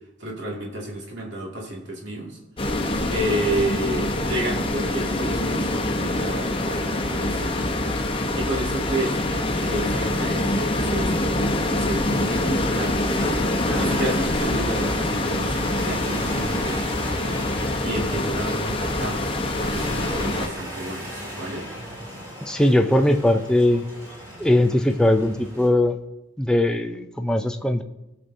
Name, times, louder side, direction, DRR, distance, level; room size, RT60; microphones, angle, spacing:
voice 1, 0.2-2.4 3.1-7.7 8.4-13.1 13.7-17.4 17.8-21.6, right 1 dB, 60° right, -2 dB, 2.1 m, -31 dB
sound 1, 2.6-20.5, left 1 dB, 25° left, 0.9 m, -25 dB
sound 2, 12.0-25.7, equal, 15° right, 4.1 m, -37 dB
voice 2, 22.5-23.9 24.4-26.0 26.4-27.8, left 1 dB, 5° left, 5 dB, 0.4 m, -20 dB
19.5 x 6.8 x 2.7 m, 0.97 s
head